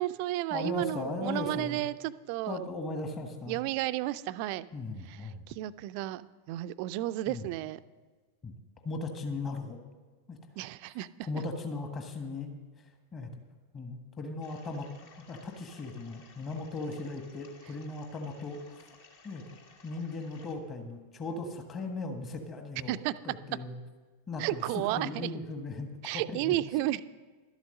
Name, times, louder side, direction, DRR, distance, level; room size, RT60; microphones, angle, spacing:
voice 1, 0.0-2.6 3.5-4.7 5.1-7.8 10.6-11.1 22.9-23.1 24.4-25.3 26.0-27.0, right 16 dB, 45° right, 15 dB, 0.4 m, -32 dB
voice 2, 0.5-1.8 2.5-3.6 4.7-5.4 7.3-7.5 8.4-8.5 8.8-9.8 10.3-10.4 11.2-12.5 13.1-13.3 13.7-14.9 15.3-18.9 19.2-19.4 19.8-23.8 24.3-26.6, left 2 dB, 25° left, 5 dB, 1.4 m, -37 dB
sound 1, 14.4-20.6, left 4 dB, 55° left, 1.7 m, -57 dB
12.0 x 8.0 x 6.5 m, 1.4 s
figure-of-eight pair, 90°, 0 cm